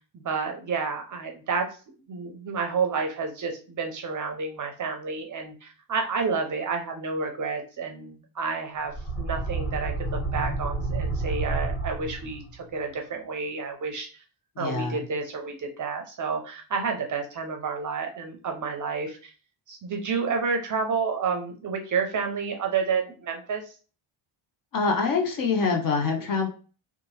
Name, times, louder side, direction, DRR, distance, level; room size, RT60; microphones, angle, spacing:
voice 1, 0.1-1.7 2.1-14.1 14.6-19.2 19.7-23.7, right 5 dB, 40° right, 3 dB, 0.5 m, -30 dB
sound 1, 8.8-12.6, right 2 dB, 15° left, 1.2 m, -30 dB
voice 2, 14.6-15.0 24.7-26.5, left 4 dB, 45° left, 3 dB, 0.6 m, -25 dB
2.8 x 2.2 x 3.0 m, 0.36 s
cardioid pair, 165°, 50 cm